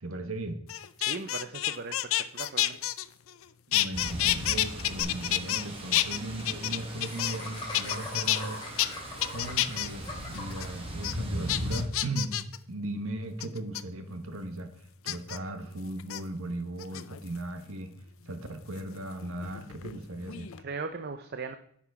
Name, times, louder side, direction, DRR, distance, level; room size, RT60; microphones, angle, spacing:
voice 1, 0.0-0.6 3.7-8.7 9.3-12.4 12.7-17.9 18.3-20.5, right 1 dB, 70° right, 8 dB, 1.2 m, -37 dB
sound 1, 0.7-3.4 3.7-5.6 5.9-7.5 7.7-8.4 8.8-8.9 9.2-9.9 10.3-10.7 11.0-11.1 11.5-12.6 13.4-13.8 15.1-15.4 16.0-16.2 16.8-17.4 18.8-20.0 20.2-20.6, left 14 dB, 65° left, 0.4 m, -29 dB
voice 2, 1.0-2.0 2.3-2.8 20.6-21.5, right 4 dB, 45° right, 8 dB, 0.5 m, -38 dB
sound 2, 3.9-11.8, equal, 25° right, 1.5 m, -38 dB
Laughter, 5.0-5.1 5.4-5.5 5.7-5.8 7.0-10.7, left 2 dB, 20° left, 2.7 m, -41 dB
10.0 x 6.0 x 4.7 m, 0.68 s
head